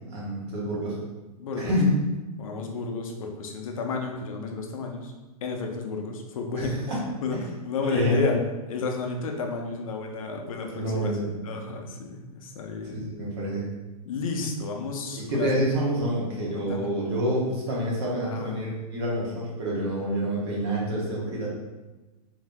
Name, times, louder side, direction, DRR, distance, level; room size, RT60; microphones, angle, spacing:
voice 1, 0.1-1.0 1.6-1.9 6.6-7.0 7.3-7.4 7.9-8.4 10.7-11.3 12.9-13.6 15.1-21.5, equal, 40° right, -4 dB, 0.9 m, -27 dB
voice 2, 1.4-1.7 2.4-5.1 5.4-6.7 7.2-8.4 8.7-11.1 11.4-13.1 14.0-15.6 16.5-16.9 18.2-18.6, left 4 dB, 60° left, 2 dB, 0.5 m, -32 dB
2.7 x 2.1 x 3.5 m, 1.1 s
hypercardioid pair, 170°, 20 cm